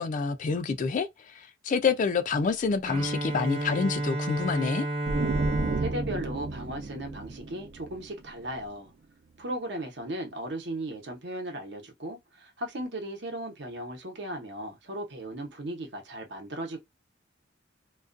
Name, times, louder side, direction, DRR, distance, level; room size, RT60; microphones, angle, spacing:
voice 1, 0.0-4.9, left 5 dB, 40° left, 0.3 m, -27 dB
Bowed string instrument, 2.8-7.7, right 1 dB, 30° right, 0.9 m, -33 dB
sound 1, 5.0-8.7, right 3 dB, 45° right, 0.3 m, -33 dB
voice 2, 5.8-8.9 9.4-16.8, right 1 dB, 60° right, 0.8 m, -36 dB
2.4 x 2.2 x 2.4 m
head